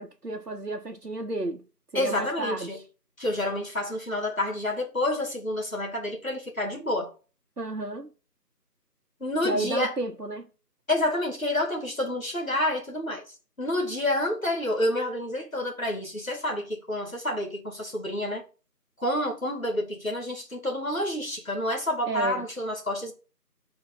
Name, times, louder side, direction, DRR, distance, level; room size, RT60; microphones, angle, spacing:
voice 1, 0.0-1.6 1.9-2.8 7.6-8.1 9.4-10.5 22.1-22.5, right 2 dB, 65° right, 1.2 m, -32 dB
voice 2, 1.9-2.8 3.2-7.1 9.2-9.9 10.9-13.2 13.6-18.4 19.0-23.1, left 1 dB, 55° left, 2.5 m, -28 dB
11.5 x 4.1 x 4.1 m
figure-of-eight pair, 180°, 49 cm